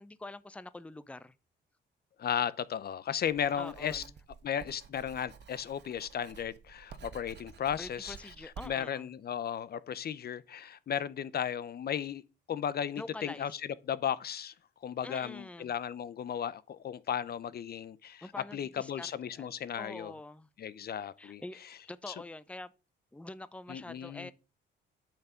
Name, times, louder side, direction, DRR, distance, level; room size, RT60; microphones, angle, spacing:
voice 1, 0.0-1.3 3.6-4.1 7.8-9.1 13.0-13.5 15.0-15.7 18.2-19.5 19.8-20.5 21.2-21.6 21.9-22.7 23.1-24.3, left 2 dB, 5° left, 0.7 m, -45 dB
voice 2, 2.2-4.0 4.4-8.2 8.6-12.2 12.5-13.6 13.9-14.5 14.8-18.3 18.5-20.1 20.6-21.4 22.1-22.2 23.7-24.3, left 8 dB, 50° left, 0.7 m, -35 dB
Writing, 3.2-8.7, right 7 dB, 60° right, 1.4 m, -51 dB
8.8 x 5.8 x 6.9 m
cardioid pair, 90°, 20 cm